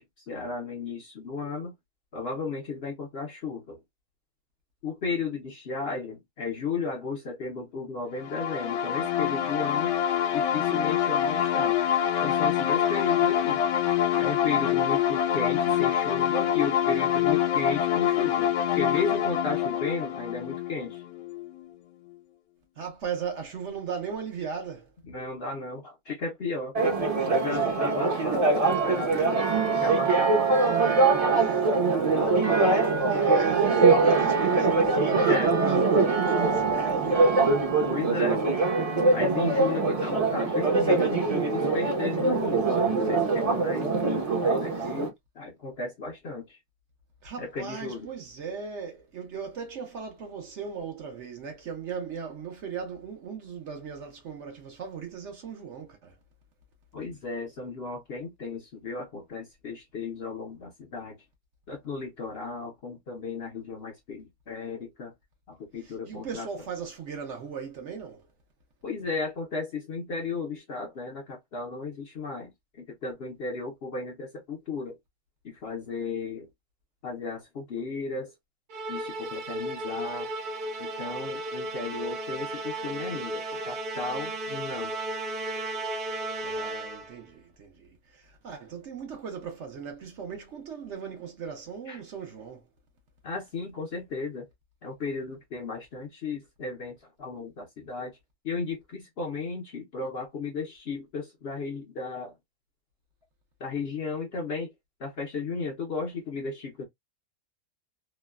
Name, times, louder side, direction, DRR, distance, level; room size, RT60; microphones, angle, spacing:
voice 1, 0.0-1.7 2.1-3.8 4.8-9.9 10.3-11.8 12.2-13.6 14.2-18.5 18.8-21.0 25.1-26.7 27.3-28.4 28.7-29.5 29.8-30.5 35.1-35.5 37.9-38.4 39.1-44.0 44.4-45.1 45.4-46.6 47.4-48.1 56.9-61.2 61.7-65.1 65.5-66.5 68.8-72.5 72.8-75.0 75.4-76.5 77.0-78.3 78.9-80.3 80.8-84.9 91.9-92.0 93.2-94.5 94.8-98.2 98.4-102.3 103.6-104.7 105.0-106.9, left 4 dB, 55° left, 0.7 m, -34 dB
sound 1, 8.2-21.7, left 10 dB, 80° left, 1.1 m, -25 dB
voice 2, 22.8-24.9 27.5-27.6 28.3-28.5 28.7-28.8 29.1-29.2 31.3-37.4 44.8-44.9 47.2-56.1 65.8-68.3 86.4-92.6, right 6 dB, 60° right, 1.0 m, -37 dB
Church bell, 26.7-45.1, right 3 dB, 30° right, 0.7 m, -23 dB
Musical instrument, 78.7-87.2, right 1 dB, 85° right, 1.3 m, -34 dB
3.0 x 2.1 x 2.2 m
omnidirectional pair, 1.6 m